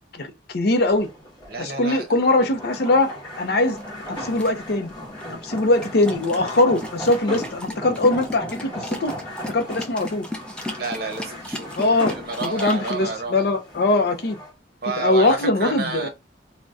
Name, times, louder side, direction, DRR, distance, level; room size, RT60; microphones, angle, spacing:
voice 1, 0.1-1.1 1.6-3.8 4.1-4.9 5.4-9.1 9.5-10.2 11.8-12.1 12.4-14.4 15.0-16.1, left 2 dB, 55° left, 0.5 m, -21 dB
sound 1, 0.8-14.5, equal, 20° left, 1.2 m, -38 dB
voice 2, 1.5-2.1 10.8-13.5 14.8-16.1, right 3 dB, 55° right, 0.8 m, -30 dB
sound 2, 3.4-12.9, left 1 dB, 5° left, 0.4 m, -36 dB
2.6 x 2.1 x 3.4 m
head